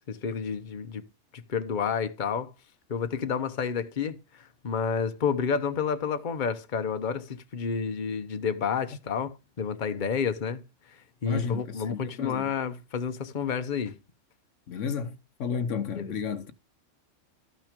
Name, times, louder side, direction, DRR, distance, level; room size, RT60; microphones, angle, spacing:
voice 1, 0.1-1.0 1.5-2.5 2.9-10.6 10.9-14.0 15.9-16.1, left 6 dB, 40° left, 1.0 m, -30 dB
voice 2, 11.2-12.5 14.7-16.5, left 6 dB, 75° left, 1.2 m, -32 dB
13.5 x 6.0 x 5.2 m
omnidirectional pair, 1.3 m